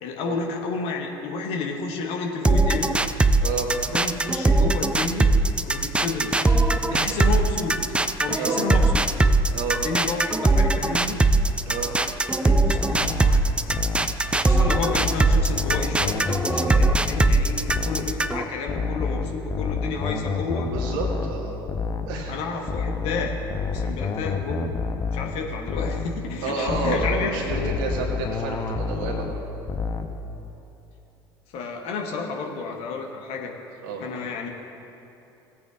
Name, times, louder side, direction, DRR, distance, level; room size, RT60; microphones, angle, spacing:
voice 1, 0.0-3.0 3.9-5.3 5.6-6.3 6.8-7.8 8.2-9.0 9.8-11.2 11.9-12.1 12.4-13.5 14.3-20.7 22.3-23.4 23.7-24.7 25.1-27.3 31.5-33.5 34.0-34.5, left 4 dB, 55° left, 2 dB, 1.3 m, -31 dB
sound 1, 2.4-18.4, right 2 dB, 10° right, 0.4 m, -20 dB
voice 2, 9.5-9.8 11.6-11.9 16.6-16.8 20.2-21.6 22.1-22.4 26.4-29.3 33.8-34.0, right 4 dB, 60° right, 0 dB, 1.8 m, -30 dB
sound 2, 12.7-14.2 14.7-17.4 17.7-18.2 18.7-22.2 22.7-25.4 25.7-26.2 26.7-29.4 29.7-30.2, left 4 dB, 30° left, 0.8 m, -29 dB
18.0 x 8.6 x 2.5 m, 2.9 s
figure-of-eight pair, 65°, 12 cm